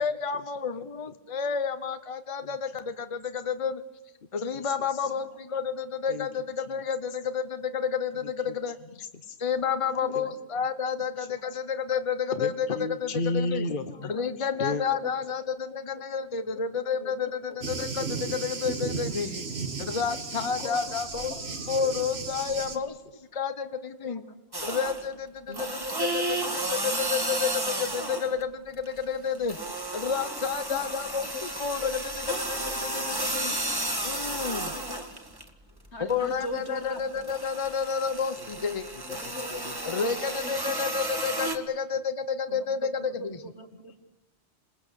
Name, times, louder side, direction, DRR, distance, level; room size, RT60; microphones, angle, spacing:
voice 1, 0.0-3.8 4.3-9.0 9.4-12.7 13.0-13.6 14.0-19.4 19.8-23.0 23.3-24.2 24.6-29.6 29.9-33.6 34.0-34.7 36.0-38.9 39.8-43.4, left 6 dB, 30° left, 10 dB, 1.0 m, -30 dB
voice 2, 4.6-5.1 6.1-6.3 6.7-6.8 8.2-8.5 8.8-9.4 10.1-10.3 11.2-11.3 12.3-14.1 14.4-14.8 21.8-22.8 30.2-30.3 39.2-39.7, left 2 dB, 50° left, 8 dB, 1.2 m, -34 dB
voice 3, 10.0-10.3 11.4-11.5 14.2-14.3 14.9-15.1 15.7-16.0 16.3-16.5 16.8-17.1 17.5-17.6 20.4-20.8 21.3-21.4 22.6-22.7 25.5-26.0 27.2-27.3 30.5-31.0 31.3-31.4 33.3-33.8 34.1-35.2 35.9-37.0 39.0-40.2 40.4-40.9 42.5-44.0, left 2 dB, 80° left, 6 dB, 2.3 m, -41 dB
Thunder, 17.6-22.8, right 4 dB, 70° right, 2.0 m, -35 dB
sound 1, 24.5-25.1 25.5-28.4 28.7-35.5 35.9-41.6, right 2 dB, 20° right, 2.0 m, -33 dB
27.5 x 20.5 x 8.4 m, 0.98 s
omnidirectional pair, 1.1 m